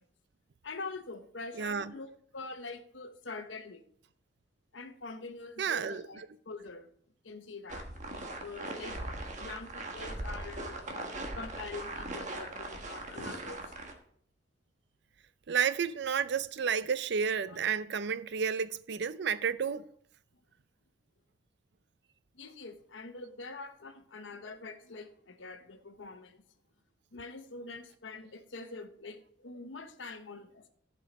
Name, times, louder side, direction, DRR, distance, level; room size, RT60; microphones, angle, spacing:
voice 1, 0.6-3.8 4.7-6.9 7.2-8.9 9.4-11.1 11.3-13.7 17.5-17.6 22.3-26.4 27.1-30.7, left 3 dB, 90° left, 1.0 m, -45 dB
voice 2, 1.6-1.9 5.6-6.0 15.5-19.9, right 6 dB, 65° right, 0.5 m, -31 dB
sound 1, 7.7-13.9, right 2 dB, 40° right, 1.3 m, -40 dB
14.0 x 5.5 x 4.1 m
head